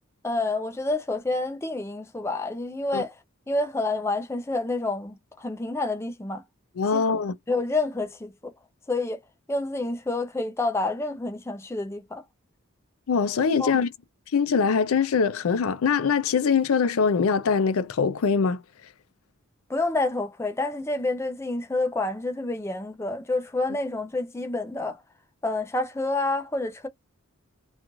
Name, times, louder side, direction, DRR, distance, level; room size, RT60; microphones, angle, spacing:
voice 1, 0.2-3.1 3.5-6.4 6.9-7.0 7.5-8.5 8.9-9.2 9.5-12.2 13.6-13.7 19.7-25.0 25.4-26.9, left 2 dB, 10° left, 0.4 m, -28 dB
voice 2, 6.8-7.3 13.1-13.9 14.3-18.6, left 5 dB, 85° left, 0.5 m, -23 dB
2.5 x 2.4 x 2.9 m
head